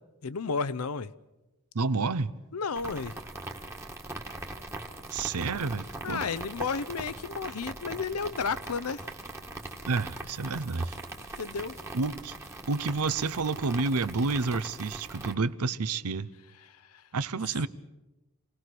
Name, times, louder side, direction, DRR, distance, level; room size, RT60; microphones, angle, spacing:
voice 1, 0.2-1.1 2.5-3.2 6.0-9.0 11.4-11.7, left 5 dB, 80° left, 0.7 m, -32 dB
voice 2, 1.7-2.3 5.1-6.2 9.9-11.0 11.9-12.3 12.7-16.3 17.1-17.7, right 4 dB, 90° right, 0.8 m, -29 dB
sound 1, 2.8-15.3, right 2 dB, 10° right, 1.5 m, -41 dB
27.5 x 18.0 x 6.1 m
head